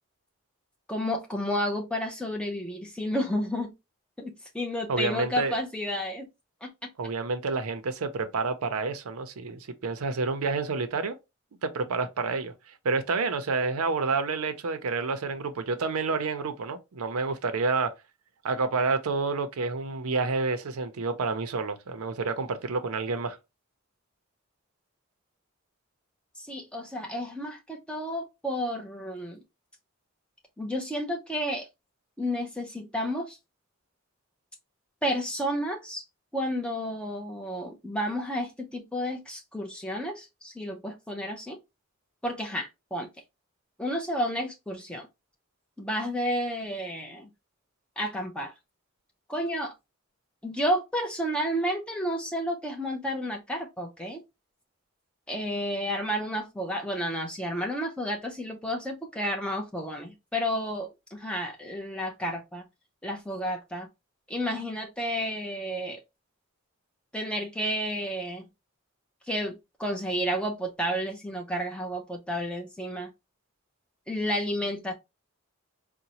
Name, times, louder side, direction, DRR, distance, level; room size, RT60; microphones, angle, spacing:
voice 1, 0.9-3.7 4.2-6.3 6.6-6.7 26.4-29.4 30.6-31.7 32.2-33.4 35.0-36.1 36.3-41.6 42.2-43.1 43.8-45.1 45.8-47.3 48.0-48.5 49.3-49.7 50.4-54.2 55.3-62.6 63.0-63.9 64.3-66.0 67.1-68.5 69.3-73.1 74.1-74.9, equal, 5° left, 0.6 m, -31 dB
voice 2, 4.9-5.6 7.0-11.1 11.6-12.5 12.8-17.9 18.4-23.4, right 4 dB, 85° right, 0.5 m, -29 dB
3.9 x 2.1 x 2.8 m
head